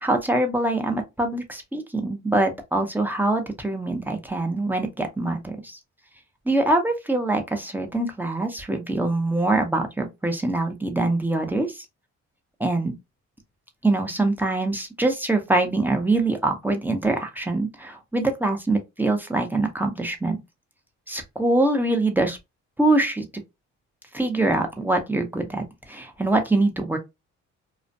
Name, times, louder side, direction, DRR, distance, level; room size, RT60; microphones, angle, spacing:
voice 1, 0.0-5.8 6.5-11.8 12.6-12.9 13.8-20.4 21.1-22.4 22.8-23.3 24.1-27.0, right 2 dB, 5° right, 0.6 m, -24 dB
2.4 x 2.1 x 2.6 m
cardioid pair, 90°, 30 cm